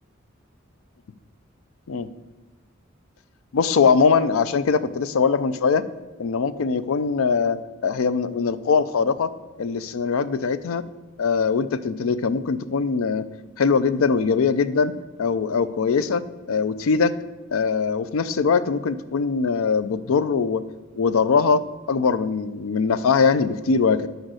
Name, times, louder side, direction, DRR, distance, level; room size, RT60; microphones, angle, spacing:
voice 1, 3.5-5.8 6.2-9.3 9.6-10.8 11.2-13.2 13.6-14.9 15.2-17.2 17.5-20.6 20.9-24.1, left 5 dB, 85° left, 15 dB, 0.4 m, -21 dB
6.4 x 5.2 x 6.2 m, 1.2 s
head